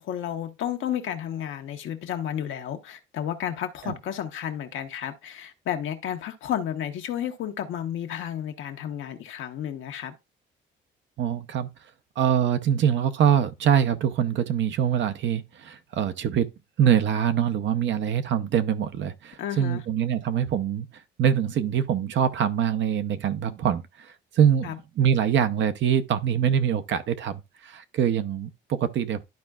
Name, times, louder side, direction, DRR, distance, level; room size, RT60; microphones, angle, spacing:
voice 1, 0.0-10.1 19.4-19.8 24.6-24.8, left 10 dB, 80° left, 1.1 m, -32 dB
voice 2, 11.2-11.7 12.2-16.5 16.8-20.9 21.2-29.2, right 9 dB, 70° right, 0.8 m, -24 dB
12.0 x 4.5 x 2.4 m
cardioid pair, 90°, 20 cm